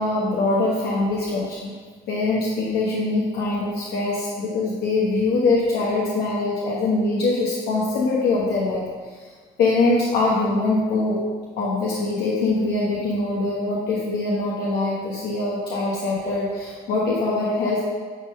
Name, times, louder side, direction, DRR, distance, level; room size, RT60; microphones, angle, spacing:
voice 1, 0.0-1.7 2.1-8.8 9.6-11.2 11.6-17.8, left 3 dB, 75° left, -5 dB, 1.4 m, -23 dB
9.9 x 3.7 x 5.6 m, 1.5 s
cardioid pair, 110°, 17 cm